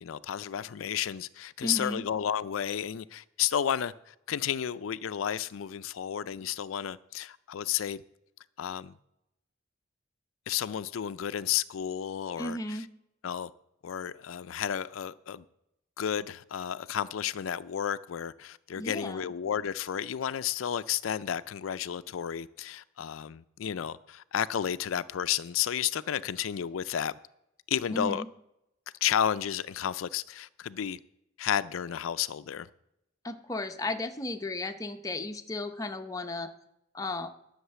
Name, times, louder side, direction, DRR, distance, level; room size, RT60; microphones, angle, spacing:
voice 1, 0.0-8.0 8.6-8.9 10.5-12.8 13.2-13.5 13.8-15.4 16.0-27.1 27.7-28.2 29.0-31.0 31.4-32.7, left 9 dB, 90° left, 0.4 m, -32 dB
voice 2, 1.6-2.0 12.4-12.9 18.8-19.3 27.9-28.3 33.2-36.5 36.9-37.3, left 2 dB, 20° left, 0.8 m, -34 dB
11.0 x 6.5 x 8.0 m
head